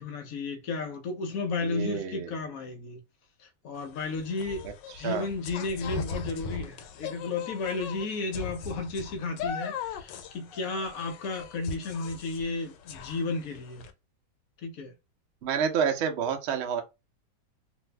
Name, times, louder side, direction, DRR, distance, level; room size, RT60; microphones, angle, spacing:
voice 1, 0.0-3.0 3.4-4.7 5.0-13.8 14.6-14.9, left 3 dB, 65° left, 1.0 m, -33 dB
voice 2, 1.6-2.3 4.6-4.7 5.0-5.2 15.4-16.8, right 7 dB, 65° right, 0.6 m, -29 dB
sound 1, 3.8-13.9, left 5 dB, 90° left, 1.3 m, -39 dB
2.6 x 2.6 x 3.2 m
omnidirectional pair, 1.9 m